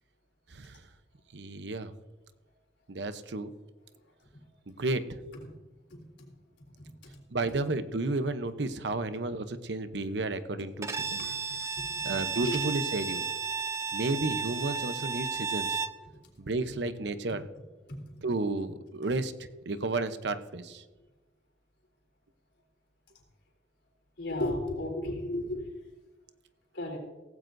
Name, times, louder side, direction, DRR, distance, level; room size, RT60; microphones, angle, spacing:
voice 1, 1.3-1.9 2.9-3.5 4.7-5.2 7.3-11.2 12.0-13.2 13.9-15.8 16.4-17.4 18.2-19.3 19.7-20.8, right 2 dB, 75° right, 10 dB, 0.8 m, -32 dB
Bowed string instrument, 10.8-16.0, right 5 dB, 15° right, 0.4 m, -33 dB
voice 2, 11.8-12.6 24.2-25.7 26.7-27.0, left 1 dB, 85° left, 1 dB, 3.7 m, -34 dB
17.0 x 15.5 x 2.7 m, 1.2 s
head